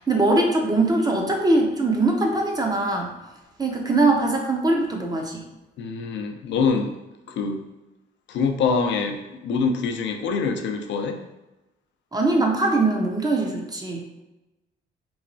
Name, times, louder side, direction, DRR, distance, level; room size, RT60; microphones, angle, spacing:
voice 1, 0.0-3.1 3.6-5.4 12.1-14.1, right 2 dB, 20° right, 0 dB, 0.5 m, -22 dB
voice 2, 5.8-6.9 7.3-7.6 8.3-11.2, left 5 dB, 65° left, 5 dB, 0.4 m, -25 dB
3.0 x 2.3 x 2.5 m, 1.0 s
cardioid pair, 90°, 20 cm